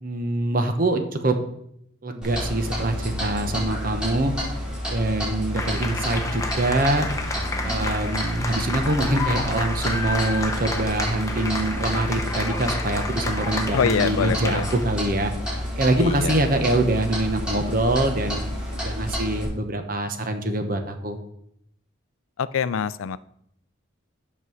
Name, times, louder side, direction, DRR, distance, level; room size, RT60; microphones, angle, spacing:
voice 1, 0.0-1.4 2.0-4.3 4.9-7.1 7.6-15.3 15.8-18.4 18.8-21.2, right 2 dB, 45° right, 6 dB, 1.1 m, -24 dB
Clock, 2.2-19.5, equal, 5° right, 4.3 m, -30 dB
sound 1, 5.5-14.9, left 2 dB, 15° left, 0.9 m, -31 dB
sound 2, 6.3-18.8, left 1 dB, 20° right, 2.3 m, -46 dB
voice 2, 13.7-14.7 16.0-16.4 22.4-23.2, left 6 dB, 85° left, 17 dB, 0.4 m, -24 dB
8.2 x 5.4 x 6.3 m, 0.73 s
head